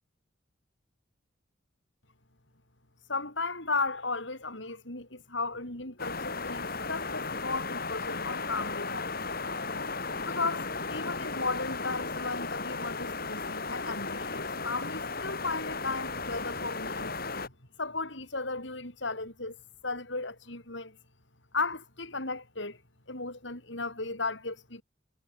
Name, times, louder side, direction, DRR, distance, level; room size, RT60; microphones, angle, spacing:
voice 1, 3.1-9.1 10.2-17.5 17.8-19.6 19.8-21.0 21.5-22.8 23.1-24.8, left 3 dB, 65° left, 7.9 m, -35 dB
sound 1, 6.0-17.5, left 3 dB, 50° left, 5.4 m, -35 dB
head